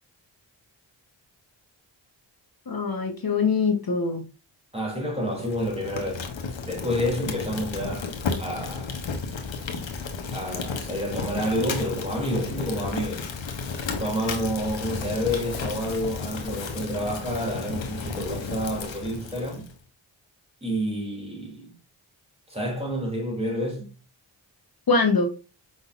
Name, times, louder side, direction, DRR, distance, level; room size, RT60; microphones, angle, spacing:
voice 1, 2.7-4.2 24.9-25.3, left 4 dB, 45° left, 1.1 m, -23 dB
voice 2, 4.7-6.3 6.6-9.0 10.3-13.3 14.0-19.7 20.6-21.8 22.5-23.9, equal, 10° right, 2.5 m, -29 dB
Fire, 5.3-19.7, left 5 dB, 70° left, 1.1 m, -33 dB
5.3 x 3.9 x 2.4 m
cardioid pair, 45°, 48 cm